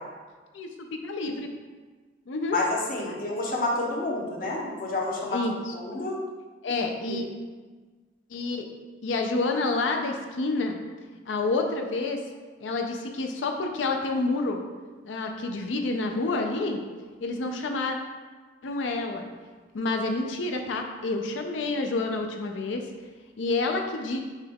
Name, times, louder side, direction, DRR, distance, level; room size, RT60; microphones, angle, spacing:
voice 1, 0.5-1.5 2.3-2.6 3.1-3.2 5.3-5.7 6.6-7.3 8.3-8.7 9.0-10.8 11.3-12.2 12.6-14.6 15.0-16.8 17.2-18.0 18.6-19.2 19.7-22.8 23.4-24.2, left 3 dB, 75° left, 4 dB, 0.5 m, -28 dB
voice 2, 2.5-5.4 5.7-6.2 6.7-7.2, left 2 dB, 50° left, -2 dB, 0.9 m, -29 dB
6.3 x 2.3 x 3.5 m, 1.4 s
head